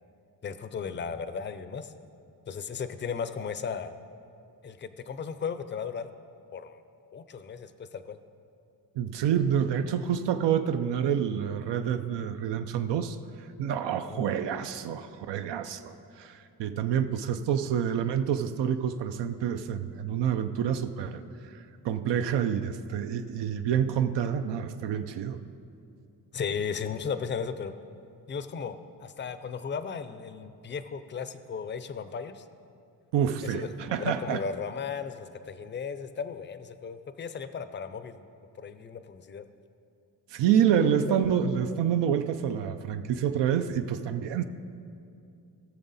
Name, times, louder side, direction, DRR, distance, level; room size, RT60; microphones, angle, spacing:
voice 1, 0.4-1.9 2.5-3.9 4.6-6.1 6.5-6.8 7.1-8.2 14.0-14.3 26.3-27.7 28.3-32.5 33.4-38.2 38.6-39.4 40.8-41.4 41.6-41.8, left 6 dB, 30° left, 11 dB, 0.4 m, -36 dB
voice 2, 9.0-13.2 13.6-25.4 33.1-34.4 40.3-44.4, right 8 dB, 85° right, 8 dB, 0.6 m, -28 dB
19.0 x 6.9 x 4.1 m, 2.6 s
wide cardioid pair, 145°, 41 cm